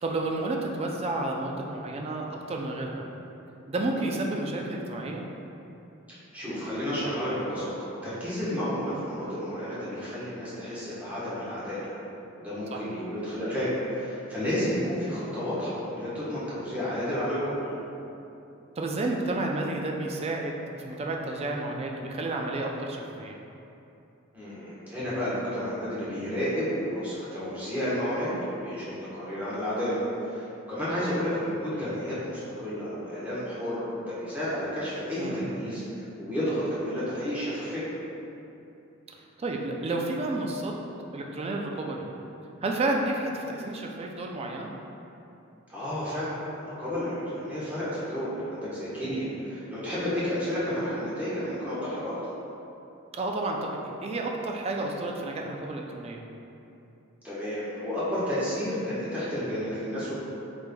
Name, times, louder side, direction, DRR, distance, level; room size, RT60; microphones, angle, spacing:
voice 1, 0.0-3.0 3.7-5.2 12.7-12.8 18.8-23.4 35.2-35.6 39.4-40.7 41.1-42.1 42.6-44.7 53.1-56.2, right 2 dB, 30° right, 0 dB, 0.3 m, -31 dB
voice 2, 6.1-11.9 12.3-17.7 24.3-37.8 43.5-43.7 45.7-52.1 57.2-60.2, equal, 10° right, -11 dB, 1.1 m, -31 dB
5.0 x 3.2 x 2.2 m, 2.8 s
head